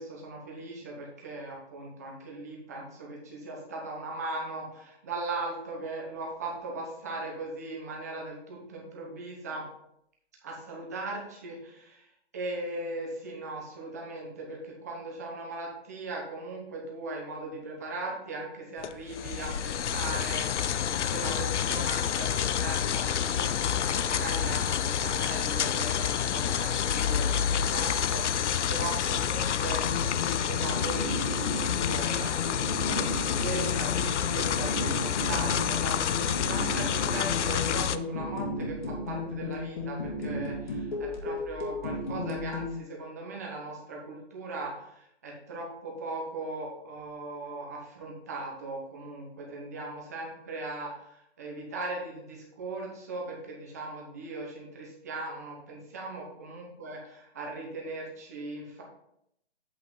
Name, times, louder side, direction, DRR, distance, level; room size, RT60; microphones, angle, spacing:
voice 1, 0.0-9.6 10.4-58.8, right 2 dB, 15° right, -1 dB, 0.8 m, -39 dB
sound 1, 18.8-38.0, left 9 dB, 90° left, 0.5 m, -28 dB
sound 2, 29.8-42.7, left 2 dB, 45° left, 1.9 m, -34 dB
8.3 x 5.1 x 3.8 m, 0.77 s
hypercardioid pair, 175°, 34 cm